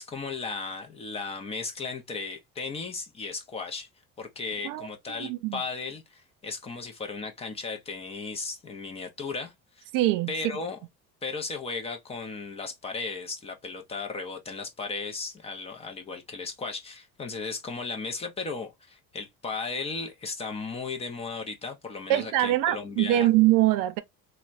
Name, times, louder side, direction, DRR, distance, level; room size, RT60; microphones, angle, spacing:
voice 1, 0.0-3.9 4.2-9.9 10.3-10.8 11.2-23.3, left 4 dB, 20° left, 0.4 m, -36 dB
voice 2, 5.2-5.6 9.9-10.3 22.1-24.0, right 15 dB, 70° right, 0.6 m, -23 dB
4.2 x 2.1 x 2.3 m
cardioid pair, 180°, 34 cm